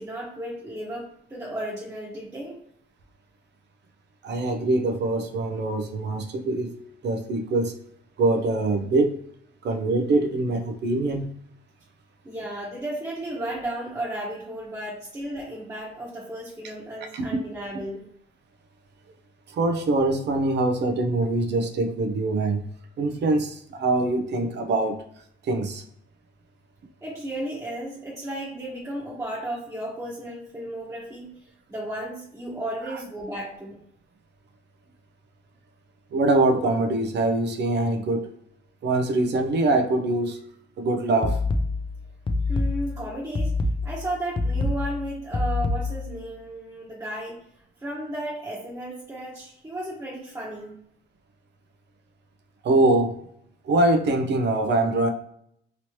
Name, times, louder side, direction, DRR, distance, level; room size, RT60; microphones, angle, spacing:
voice 1, 0.0-2.6 12.2-18.0 27.0-31.3 31.7-33.8 42.5-43.5 43.8-47.4 47.8-50.8, right 1 dB, 15° right, -7 dB, 1.1 m, -34 dB
voice 2, 4.2-6.8 7.0-7.7 8.2-9.2 9.6-11.3 17.1-17.3 19.5-22.6 23.0-25.0 25.5-25.8 36.1-38.3 38.8-40.4 40.8-41.4 52.6-53.2 53.6-55.1, right 2 dB, 60° right, 5 dB, 0.6 m, -23 dB
sound 1, 41.2-46.2, left 2 dB, 25° left, 0.4 m, -26 dB
3.0 x 2.9 x 3.0 m, 0.70 s
cardioid pair, 90°, 20 cm